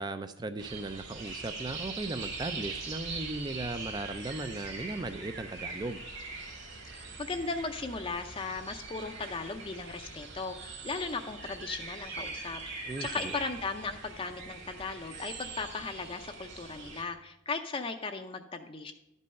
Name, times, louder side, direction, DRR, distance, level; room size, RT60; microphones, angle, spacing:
voice 1, 0.0-6.0 12.9-13.4, right 2 dB, 20° right, 9 dB, 0.4 m, -37 dB
sound 1, 0.6-17.0, right 4 dB, 55° right, 2.2 m, -42 dB
voice 2, 6.9-18.9, left 4 dB, 25° left, 5 dB, 0.6 m, -37 dB
11.5 x 5.4 x 6.3 m, 0.94 s
head